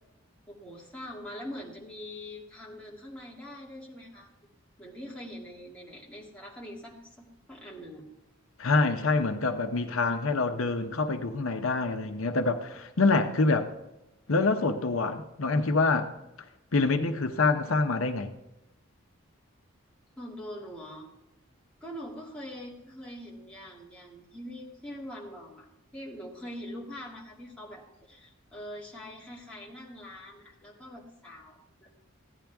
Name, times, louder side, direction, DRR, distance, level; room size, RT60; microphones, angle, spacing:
voice 1, 0.5-4.3 4.8-8.0 20.2-21.1 21.8-32.1, equal, 5° left, 2.4 m, -43 dB
voice 2, 8.6-13.7 14.3-16.1 16.7-18.3, left 3 dB, 80° left, 0.8 m, -26 dB
15.5 x 10.5 x 3.5 m
head